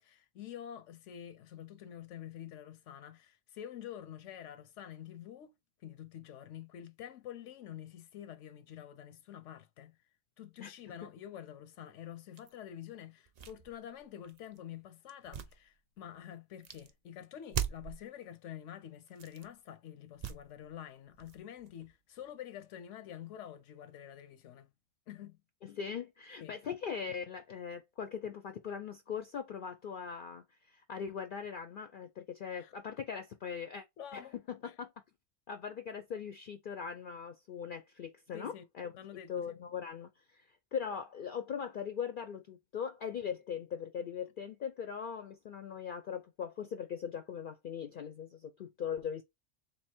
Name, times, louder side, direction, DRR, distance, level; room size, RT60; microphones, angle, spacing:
voice 1, 0.0-5.6 5.8-10.0 10.4-24.7 25.1-25.4 26.4-26.5 32.4-32.7 34.0-34.4 34.6-34.7 38.3-38.6 39.0-39.5, left 10 dB, 85° left, 0.9 m, -48 dB
voice 2, 10.6-10.9 25.6-33.8 34.1-34.9 35.5-38.9 39.3-40.4 40.7-49.2, left 7 dB, 60° left, 0.6 m, -40 dB
sound 1, 12.4-12.5 13.2-14.6 15.1-16.2 16.6-16.9 17.5-18.0 19.1-19.5 20.1-20.7 21.1-22.3, right 8 dB, 55° right, 0.4 m, -41 dB
3.5 x 2.7 x 4.3 m
omnidirectional pair, 1.2 m